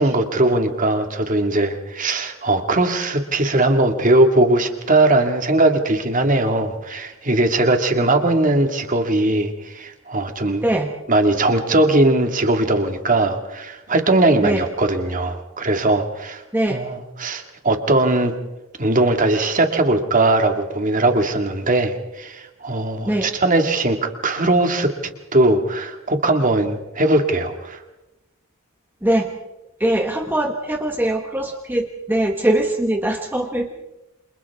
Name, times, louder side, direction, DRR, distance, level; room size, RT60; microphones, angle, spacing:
voice 1, 0.0-10.7 11.1-16.4 16.7-18.3 18.8-24.9 25.3-27.8, right 2 dB, 40° right, 5 dB, 2.1 m, -19 dB
voice 2, 29.8-33.7, right 1 dB, 10° right, 3 dB, 1.3 m, -21 dB
28.5 x 27.0 x 3.6 m, 0.98 s
head